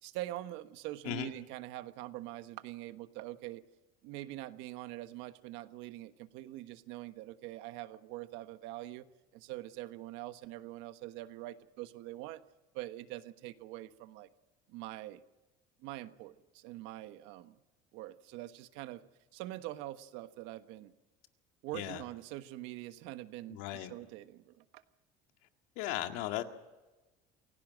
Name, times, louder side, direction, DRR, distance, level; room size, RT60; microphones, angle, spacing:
voice 1, 0.0-3.6 4.0-9.1 9.3-12.4 12.7-14.3 14.7-15.2 15.8-17.6 17.9-19.0 19.3-20.9 21.6-24.8, right 15 dB, 80° right, 10 dB, 1.3 m, -44 dB
voice 2, 23.5-23.9 25.8-26.4, left 14 dB, 90° left, 6 dB, 2.0 m, -36 dB
28.0 x 17.0 x 6.3 m, 1.1 s
cardioid pair, 130°, 19 cm